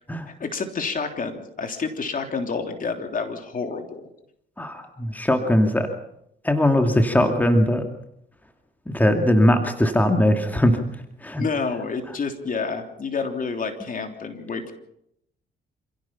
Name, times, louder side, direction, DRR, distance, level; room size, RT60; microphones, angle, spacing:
voice 1, 0.4-4.1 11.4-14.7, left 4 dB, 45° left, 5 dB, 3.3 m, -29 dB
voice 2, 4.6-5.9 6.4-7.8 8.9-10.8 11.2-11.4, left 1 dB, 10° left, 5 dB, 2.5 m, -20 dB
27.5 x 16.5 x 5.9 m, 0.77 s
cardioid pair, 90°, 20 cm